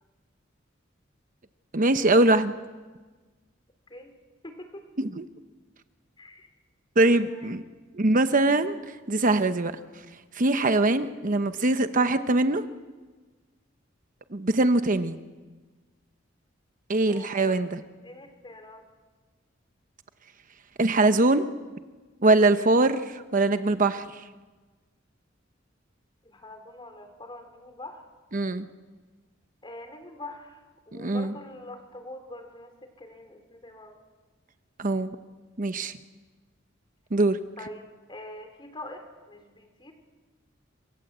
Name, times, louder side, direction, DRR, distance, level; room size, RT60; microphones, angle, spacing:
voice 1, 1.7-2.5 5.2-5.3 7.0-7.6 7.9-9.7 10.3-12.6 14.3-15.2 16.9-17.8 20.8-21.4 22.2-24.2 28.3-28.7 31.0-31.3 34.8-35.1 35.6-35.9 37.1-37.4, right 2 dB, 45° right, 9 dB, 0.9 m, -22 dB
voice 2, 4.4-4.9 6.2-6.5 7.2-7.6 17.1-17.6 18.0-18.8 26.2-28.1 29.6-34.0 37.6-39.9, left 1 dB, 25° left, 7 dB, 3.6 m, -44 dB
27.0 x 24.0 x 8.1 m, 1.4 s
head